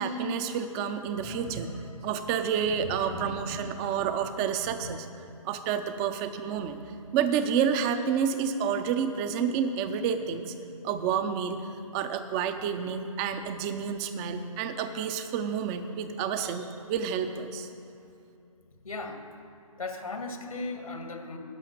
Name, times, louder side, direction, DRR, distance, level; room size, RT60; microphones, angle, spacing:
voice 1, 0.0-1.8 2.0-5.1 5.4-6.8 7.1-10.5 10.8-17.7, right 7 dB, 10° right, 9 dB, 0.4 m, -29 dB
voice 2, 1.8-2.3 2.8-3.9 4.6-5.0 18.8-19.2 19.8-21.4, left 3 dB, 85° left, 5 dB, 1.9 m, -38 dB
11.5 x 6.3 x 8.5 m, 2.7 s
hypercardioid pair, 150°, 18 cm